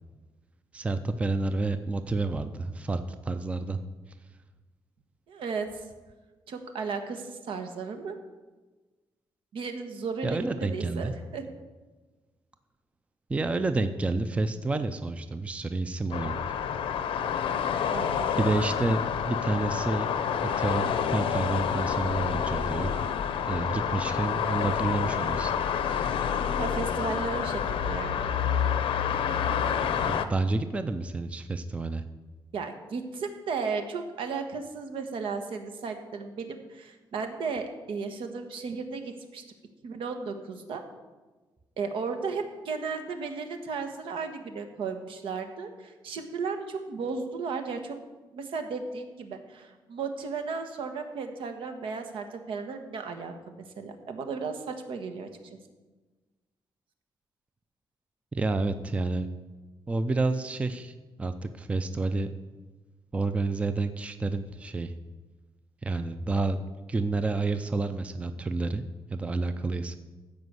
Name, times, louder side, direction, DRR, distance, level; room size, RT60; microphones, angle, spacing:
voice 1, 0.7-3.8 10.2-11.1 13.3-16.3 18.4-20.1 20.6-22.9 23.5-25.5 25.9-26.1 30.1-32.0 58.3-59.3 59.9-60.9 61.2-62.3 63.1-64.9 65.8-66.6 66.9-68.8 69.1-70.0, right 3 dB, 15° right, 10 dB, 0.4 m, -29 dB
voice 2, 5.3-5.7 6.5-8.2 9.5-11.4 17.9-18.3 26.6-28.3 32.5-39.4 39.8-40.8 41.8-48.0 48.3-55.3, right 5 dB, 80° right, 7 dB, 1.4 m, -35 dB
sound 1, 16.1-30.3, left 8 dB, 85° left, 0.8 m, -28 dB
15.0 x 5.1 x 7.9 m, 1.3 s
wide cardioid pair, 180°, 9 cm